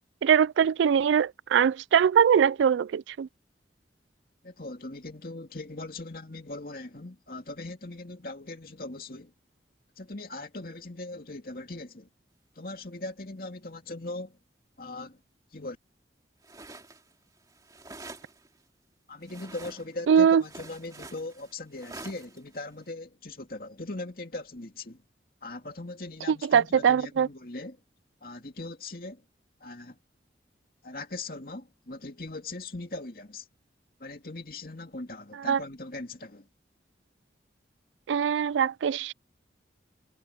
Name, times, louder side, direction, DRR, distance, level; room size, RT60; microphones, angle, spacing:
voice 1, 0.2-3.3 20.1-20.4 26.3-27.3 35.4-35.6 38.1-39.1, right 7 dB, 90° right, 0.3 m, -22 dB
voice 2, 4.4-9.3 10.0-12.1 12.6-14.4 14.8-15.2 15.5-15.8 19.1-25.0 25.4-27.8 28.2-29.2 29.6-30.0 30.8-33.5 34.0-36.5, left 2 dB, 55° left, 2.5 m, -40 dB
sound 1, 16.4-17.1 17.4-18.6 19.2-20.1 20.4-22.8, right 2 dB, 20° right, 2.4 m, -46 dB
head